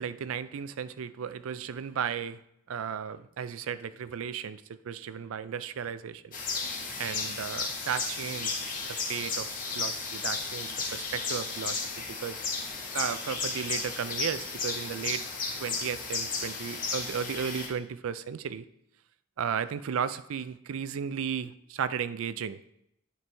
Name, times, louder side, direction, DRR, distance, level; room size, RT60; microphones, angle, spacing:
voice 1, 0.0-2.4 2.7-6.4 7.0-8.6 8.9-11.8 12.2-12.4 12.9-15.2 15.6-18.7 19.4-22.6, right 7 dB, 85° right, 14 dB, 0.4 m, -34 dB
sound 1, 6.3-17.7, left 4 dB, 40° left, 1.2 m, -34 dB
10.0 x 4.6 x 3.4 m, 0.77 s
head